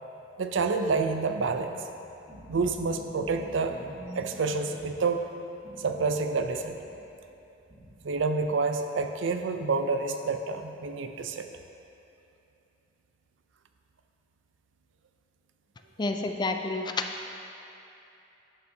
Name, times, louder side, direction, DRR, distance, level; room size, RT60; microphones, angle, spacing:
voice 1, 0.4-1.8 2.5-3.7 4.2-5.3 5.8-6.7 8.0-11.5, right 4 dB, 80° right, 6 dB, 0.5 m, -28 dB
sound 1, 1.9-5.1 5.6-8.5, right 1 dB, 50° right, 1.9 m, -48 dB
voice 2, 16.0-17.3, left 3 dB, 25° left, 5 dB, 0.4 m, -30 dB
11.0 x 6.9 x 2.7 m, 2.8 s
head